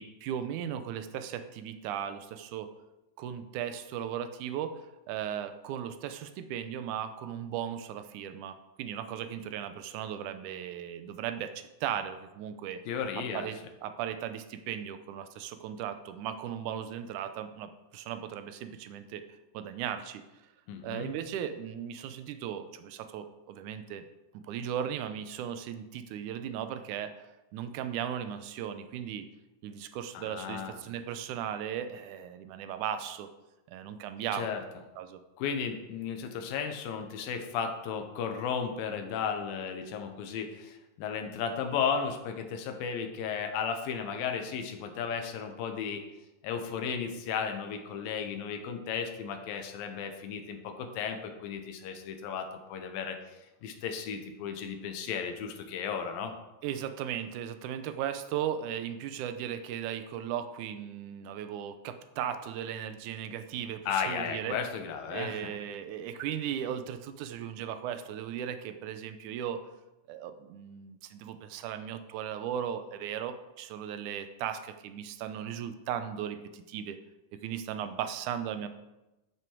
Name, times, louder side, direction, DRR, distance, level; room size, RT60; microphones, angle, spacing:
voice 1, 0.0-2.7 3.2-12.8 13.3-19.2 19.5-20.2 20.8-24.0 24.3-29.3 29.6-33.3 33.7-34.5 35.0-35.2 56.6-64.6 65.1-69.7 70.1-77.0 77.4-78.7, right 9 dB, 75° right, 9 dB, 2.0 m, -37 dB
voice 2, 12.9-13.5 20.7-21.1 30.1-30.8 34.3-34.6 35.4-46.0 46.4-56.3 63.9-65.6, left 6 dB, 85° left, 6 dB, 2.8 m, -34 dB
12.0 x 6.6 x 4.6 m, 0.99 s
omnidirectional pair, 4.0 m